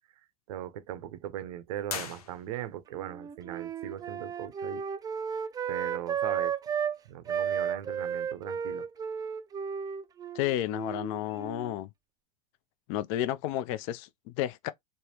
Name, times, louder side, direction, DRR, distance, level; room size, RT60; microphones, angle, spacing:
voice 1, 0.5-4.8 5.7-6.5 7.1-8.9, right 11 dB, 75° right, 0.6 m, -39 dB
sound 1, 1.8-2.9, left 6 dB, 90° left, 0.8 m, -39 dB
Wind instrument woodwind instrument, 3.0-7.0 7.3-11.8, right 7 dB, 20° right, 0.3 m, -33 dB
voice 2, 10.3-11.9 12.9-14.7, left 13 dB, 60° left, 0.4 m, -31 dB
3.3 x 2.1 x 2.8 m
hypercardioid pair, 85°, 19 cm